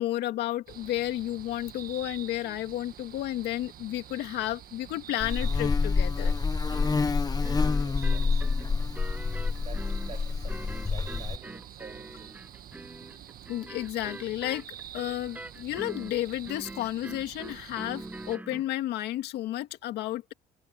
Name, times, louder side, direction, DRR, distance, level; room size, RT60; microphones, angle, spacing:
voice 1, 0.0-6.3 13.5-14.6 14.9-20.3, left 14 dB, 80° left, 2.0 m, -32 dB
sound 1, 0.7-18.4, right 11 dB, 60° right, 1.8 m, -47 dB
Buzz, 5.2-11.4, left 4 dB, 20° left, 1.0 m, -27 dB
sound 2, 6.7-18.7, right 1 dB, 10° right, 6.9 m, -44 dB
voice 2, 7.2-9.2 9.6-12.5, right 6 dB, 35° right, 7.9 m, -50 dB
cardioid pair, 110°, 17 cm